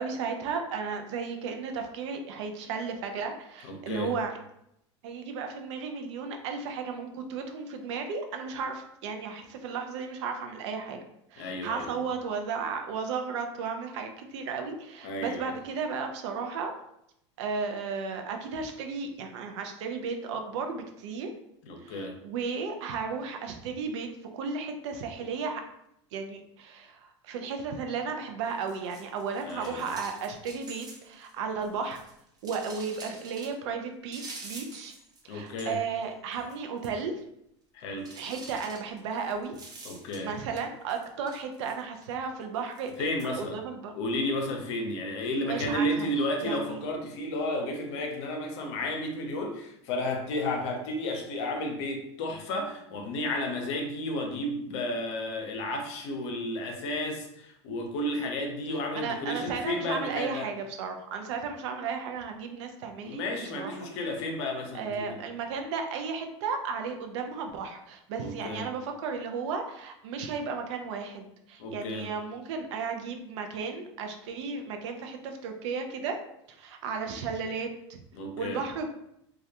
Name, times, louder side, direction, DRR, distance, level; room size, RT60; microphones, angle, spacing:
voice 1, 0.0-4.3 5.0-11.0 11.3-16.7 17.4-21.3 21.8-24.1 24.3-25.6 26.1-32.0 32.4-34.9 35.3-37.1 38.1-39.6 40.2-43.9 45.4-46.1 46.4-46.9 58.9-63.2 63.5-63.7 64.7-76.2 76.6-78.0 78.4-78.9, right 5 dB, 70° right, 4 dB, 0.4 m, -34 dB
voice 2, 3.6-4.1 11.4-11.9 15.0-15.5 21.6-22.2 29.4-29.9 35.3-35.8 37.7-38.1 39.8-40.3 43.0-43.6 44.0-60.5 63.0-65.2 68.2-68.7 71.6-72.1 78.1-78.6, left 1 dB, 65° left, 2 dB, 0.6 m, -32 dB
sound 1, 28.5-31.3 31.6-33.5 34.1-35.2 35.5-36.0 36.3-36.5 36.8-36.9 38.0-40.6 40.9-42.1 42.7-43.3, right 3 dB, 25° right, 0.6 m, -47 dB
2.3 x 2.1 x 2.7 m, 0.78 s
hypercardioid pair, 105°, 16 cm